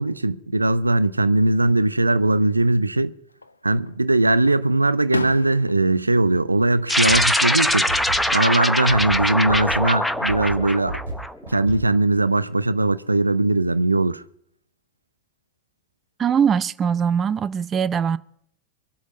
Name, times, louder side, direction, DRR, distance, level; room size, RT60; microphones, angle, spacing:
voice 1, 0.0-3.1 3.6-7.9 8.3-11.0 11.5-14.2, right 2 dB, 80° right, 0.7 m, -20 dB
Fireworks, 3.3-4.0 4.5-7.6 7.9-8.5 10.0-10.8, left 3 dB, 80° left, 0.7 m, -35 dB
sound 1, 6.5-6.7 7.1-11.9, right 2 dB, 65° right, 6.8 m, -32 dB
sound 2, 6.9-11.6, left 1 dB, ahead, 0.9 m, -22 dB
voice 2, 16.2-18.2, right 7 dB, 25° right, 0.6 m, -21 dB
24.0 x 8.2 x 5.3 m
figure-of-eight pair, 90°, 0 cm